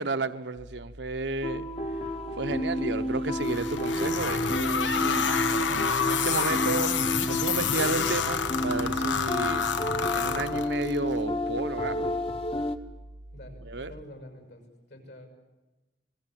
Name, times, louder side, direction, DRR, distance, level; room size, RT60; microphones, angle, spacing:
voice 1, 0.0-1.7 2.4-5.4 6.0-7.0 7.3-9.6 10.1-12.1 13.7-13.9, right 3 dB, 70° right, 9 dB, 1.0 m, -32 dB
sound 1, 0.6-14.0, right 1 dB, 90° right, 2.0 m, -47 dB
sound 2, 1.4-12.8, equal, 30° left, 1.2 m, -31 dB
sound 3, 3.4-11.0, left 6 dB, 85° left, 1.2 m, -28 dB
voice 2, 13.3-15.3, left 1 dB, 70° left, 5 dB, 6.7 m, -47 dB
26.5 x 20.5 x 7.6 m, 1.1 s
head